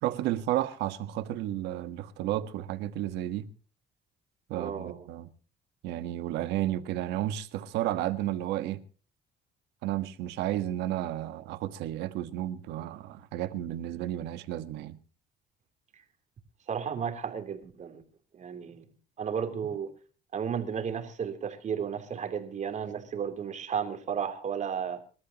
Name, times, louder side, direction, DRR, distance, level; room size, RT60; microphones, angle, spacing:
voice 1, 0.0-3.5 4.5-5.3 5.8-8.8 9.8-15.0, right 13 dB, 90° right, 1.4 m, -32 dB
voice 2, 4.5-5.0 16.7-18.0 18.3-18.9 19.2-19.9 20.3-25.0, right 7 dB, 45° right, 3.3 m, -33 dB
26.0 x 13.0 x 3.0 m
cardioid pair, 110°, 17 cm